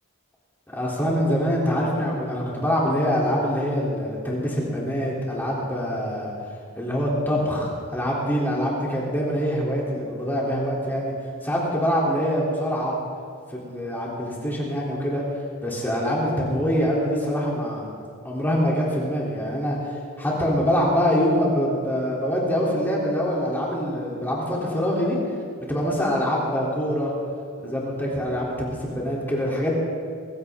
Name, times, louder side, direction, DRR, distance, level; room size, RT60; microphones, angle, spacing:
voice 1, 0.7-6.3 6.8-11.1 11.4-13.0 13.5-15.2 15.6-18.0 18.2-19.8 20.2-25.2 25.7-27.1 27.6-29.7, equal, 10° left, -5 dB, 3.3 m, -24 dB
22.0 x 15.5 x 3.7 m, 2.2 s
head